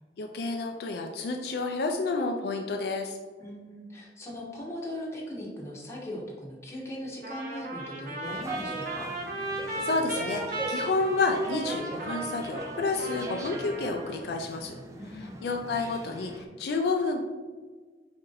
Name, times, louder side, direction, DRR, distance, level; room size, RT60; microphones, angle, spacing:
voice 1, 0.2-3.2 9.8-14.7 15.4-17.2, left 3 dB, 65° left, 3 dB, 0.3 m, -30 dB
voice 2, 3.4-9.1 15.0-15.4, equal, 15° left, -3 dB, 0.9 m, -39 dB
Trumpet, 7.2-14.3, right 2 dB, 55° right, 0.8 m, -36 dB
sound 1, 8.2-16.4, right 1 dB, 20° right, 0.4 m, -41 dB
4.2 x 2.6 x 3.9 m, 1.4 s
head